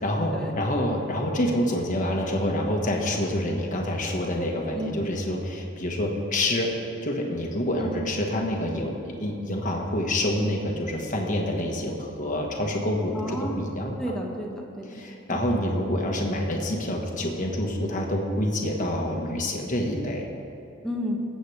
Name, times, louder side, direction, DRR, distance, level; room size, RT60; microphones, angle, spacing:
voice 1, 0.0-6.7 7.0-14.1 14.8-20.3, left 1 dB, 40° left, 0 dB, 1.4 m, -27 dB
voice 2, 13.1-13.6 14.0-14.9 15.3-15.5 20.8-21.2, equal, 5° left, -1 dB, 1.3 m, -32 dB
19.5 x 7.8 x 3.4 m, 2.8 s
head